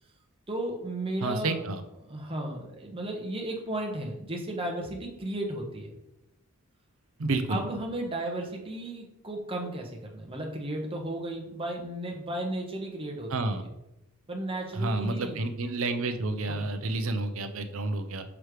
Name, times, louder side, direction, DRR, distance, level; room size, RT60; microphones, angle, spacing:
voice 1, 0.5-1.6 2.0-5.9 7.5-13.7 14.3-15.4 16.5-16.6, right 1 dB, 25° right, 0 dB, 1.0 m, -34 dB
voice 2, 1.2-1.8 7.2-7.6 13.3-13.6 14.7-18.2, right 2 dB, 65° right, 8 dB, 0.6 m, -30 dB
6.0 x 3.3 x 4.8 m, 0.90 s
head